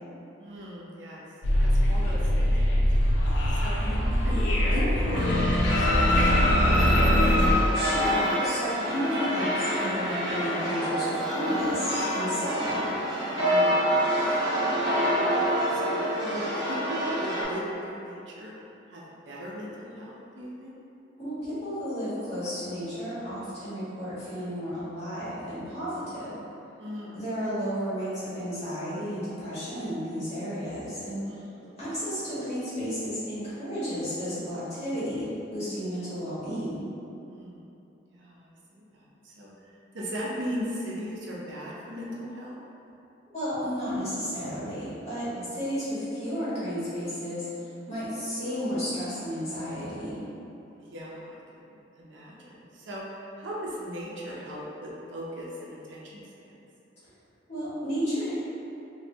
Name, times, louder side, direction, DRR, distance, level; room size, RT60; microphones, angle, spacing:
voice 1, 0.4-1.2 1.5-3.9 4.2-4.4 4.7-7.2 12.3-12.9 13.3-14.2 14.7-18.5 18.9-20.7 26.8-27.3 31.3-31.8 37.3-37.7 38.1-42.6 45.3-45.5 50.8-56.5, equal, 75° right, -4 dB, 0.5 m, -39 dB
sound 1, 1.4-7.5, equal, 85° left, 0.5 m, -22 dB
sound 2, 5.7-17.4, equal, 20° right, 0.7 m, -27 dB
voice 2, 7.7-12.8 16.2-16.4 21.2-26.3 27.1-31.5 31.8-36.8 43.3-50.2 57.5-58.3, equal, 35° left, -14 dB, 1.4 m, -33 dB
3.2 x 2.6 x 2.7 m, 2.8 s
head